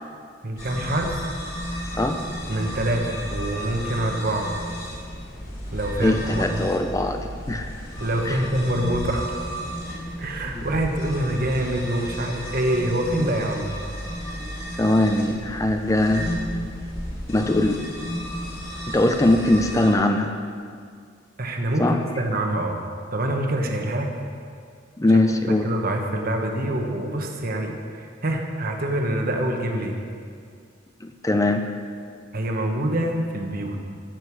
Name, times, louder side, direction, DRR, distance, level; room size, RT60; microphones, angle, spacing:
voice 1, 0.4-1.2 2.5-4.6 5.7-6.7 8.0-9.3 10.2-13.8 21.4-24.1 25.1-25.2 25.5-30.0 32.3-33.8, right 1 dB, 50° right, 3 dB, 1.3 m, -26 dB
sound 1, 0.6-19.9, equal, 50° left, 3.4 m, -33 dB
voice 2, 6.0-7.7 8.3-8.4 10.5-10.6 14.8-16.3 17.3-17.8 18.9-20.3 21.8-22.0 25.0-25.7 31.0-31.7, left 1 dB, 15° left, 5 dB, 0.5 m, -21 dB
15.0 x 7.8 x 4.8 m, 2.2 s
head